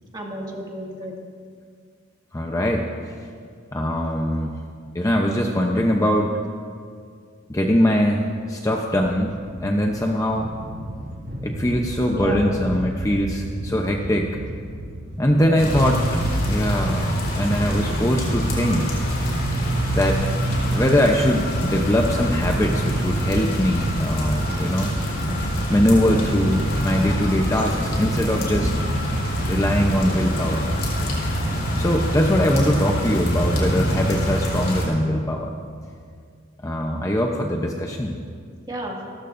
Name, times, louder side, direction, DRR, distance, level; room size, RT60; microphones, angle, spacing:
voice 1, 0.1-1.1 12.1-12.5 15.3-15.6 38.7-39.0, right 1 dB, 20° right, -2 dB, 2.2 m, -32 dB
voice 2, 2.3-2.9 3.7-4.6 4.9-6.3 7.5-10.5 11.4-14.3 15.2-16.0 16.5-19.0 19.9-20.2 20.7-24.9 25.7-28.8 29.5-30.7 31.8-35.5 36.6-38.2, equal, 15° left, 1 dB, 0.7 m, -22 dB
sound 1, 8.9-20.6, equal, 60° right, 3.8 m, -36 dB
sound 2, 15.6-34.9, equal, 50° left, 4.3 m, -24 dB
29.0 x 13.5 x 2.6 m, 2.1 s
head